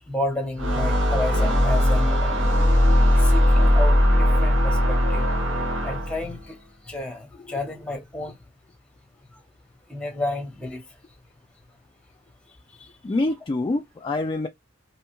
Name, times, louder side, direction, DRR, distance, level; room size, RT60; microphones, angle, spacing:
voice 1, 0.1-2.4 2.9-5.3 5.8-6.6 6.8-8.4 9.3-9.4 9.9-10.8 12.8-12.9, left 2 dB, 5° left, 0.9 m, -31 dB
sound 1, 0.6-6.3, equal, 75° right, 1.1 m, -19 dB
voice 2, 13.0-14.5, left 2 dB, 25° left, 0.3 m, -26 dB
3.0 x 2.3 x 2.8 m
head